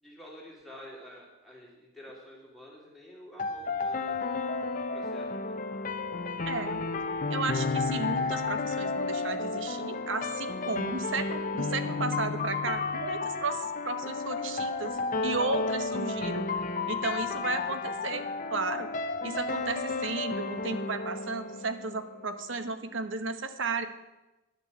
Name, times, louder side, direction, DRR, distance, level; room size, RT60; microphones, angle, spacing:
voice 1, 0.0-4.3 4.7-5.6 16.1-16.2, equal, ahead, -5 dB, 3.0 m, -49 dB
sound 1, 3.4-22.3, left 3 dB, 40° left, 0.6 m, -32 dB
voice 2, 6.5-6.8 7.3-16.5 16.9-18.9 19.2-23.9, right 4 dB, 60° right, 9 dB, 1.0 m, -34 dB
11.0 x 7.0 x 8.5 m, 1.0 s
head